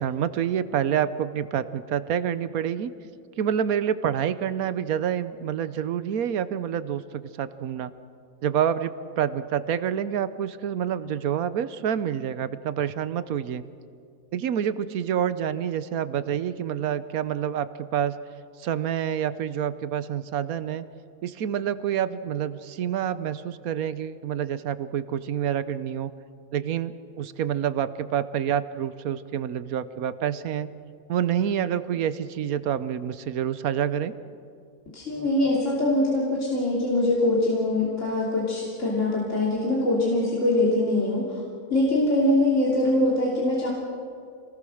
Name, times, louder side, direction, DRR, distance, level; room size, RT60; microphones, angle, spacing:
voice 1, 0.0-2.9 3.4-7.9 8.4-13.6 14.3-18.2 18.6-20.9 21.2-26.1 26.5-30.7 31.1-34.1, right 9 dB, 90° right, 13 dB, 1.3 m, -27 dB
voice 2, 34.9-41.4 41.7-43.7, left 1 dB, 60° left, -5 dB, 3.4 m, -23 dB
27.0 x 19.5 x 6.4 m, 2.3 s
omnidirectional pair, 1.5 m